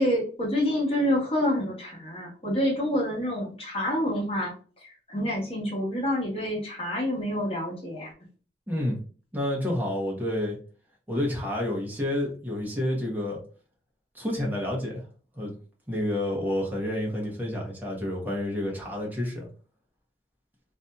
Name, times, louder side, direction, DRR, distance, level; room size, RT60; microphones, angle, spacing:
voice 1, 0.0-4.5 4.8-8.1, equal, 30° left, -4 dB, 1.2 m, -27 dB
voice 2, 8.7-9.0 9.3-10.6 11.1-13.4 14.1-15.0 15.4-15.5 15.9-19.5, left 1 dB, 10° right, -1 dB, 0.8 m, -29 dB
2.7 x 2.5 x 2.2 m, 0.39 s
head